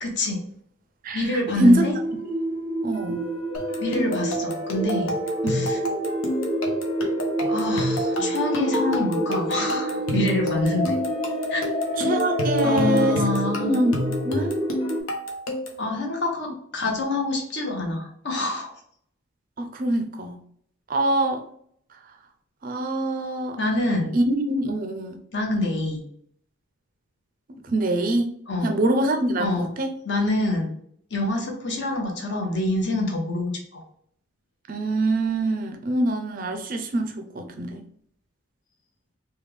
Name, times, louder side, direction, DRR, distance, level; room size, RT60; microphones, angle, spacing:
voice 1, 0.0-0.4 1.1-2.0 3.8-5.1 5.5-5.8 7.5-11.0 11.5-11.6 12.6-13.8 15.8-18.7 23.6-24.2 25.3-26.0 28.5-28.7 29.4-29.7 30.0-30.7 31.1-33.8, left 2 dB, 55° left, 1 dB, 0.9 m, -26 dB
voice 2, 1.0-1.9 2.8-3.3 5.4-5.6 12.0-13.2 13.6-13.9 14.2-14.6 19.6-20.4 20.9-21.4 22.6-23.6 24.1-25.2 27.6-28.3 28.6-29.9 34.7-37.8, right 1 dB, 40° right, 5 dB, 0.4 m, -24 dB
sound 1, 1.9-15.0, equal, 25° left, 0.6 m, -28 dB
sound 2, 3.5-15.9, left 1 dB, 80° left, 0.7 m, -30 dB
3.2 x 2.3 x 3.3 m, 0.65 s
head